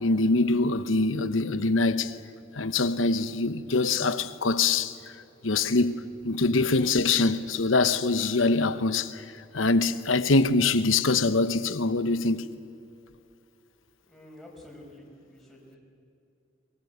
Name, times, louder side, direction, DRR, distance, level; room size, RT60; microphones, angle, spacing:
voice 1, 0.0-2.1 2.5-4.9 5.4-9.2 9.5-12.4, left 3 dB, 90° left, 1.1 m, -24 dB
voice 2, 14.1-15.8, left 1 dB, ahead, 5.7 m, -49 dB
24.0 x 22.5 x 8.1 m
head